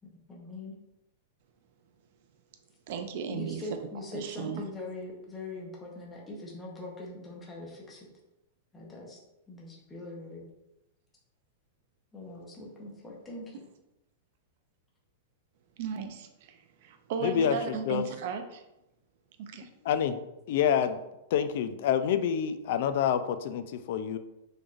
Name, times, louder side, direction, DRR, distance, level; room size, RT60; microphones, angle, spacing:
voice 1, 0.0-0.8 3.3-8.1 8.7-9.2 9.5-10.5 12.1-13.6, left 2 dB, 10° left, -3 dB, 0.7 m, -42 dB
voice 2, 2.9-3.6 4.1-4.6 15.8-18.6 19.4-19.7, right 6 dB, 40° right, 7 dB, 0.5 m, -36 dB
voice 3, 17.2-18.0 19.8-20.2 20.5-21.0 21.3-24.2, left 8 dB, 45° left, 10 dB, 0.3 m, -27 dB
6.2 x 3.1 x 2.4 m, 0.91 s
supercardioid pair, 180°, 0 cm